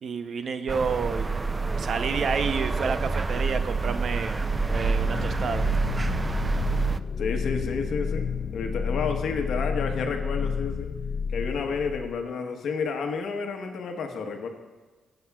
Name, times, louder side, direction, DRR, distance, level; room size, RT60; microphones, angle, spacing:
voice 1, 0.0-1.3 1.8-4.4 4.7-5.7, right 5 dB, 60° right, 9 dB, 0.6 m, -29 dB
sound 1, 0.7-7.0, right 4 dB, 25° right, 0.3 m, -27 dB
sound 2, 4.4-12.2, left 6 dB, 55° left, 0.4 m, -31 dB
voice 2, 7.2-8.3 8.5-10.9 11.3-14.5, left 5 dB, 75° left, 5 dB, 1.1 m, -30 dB
17.5 x 7.9 x 2.3 m, 1.3 s
cardioid pair, 80°, 0 cm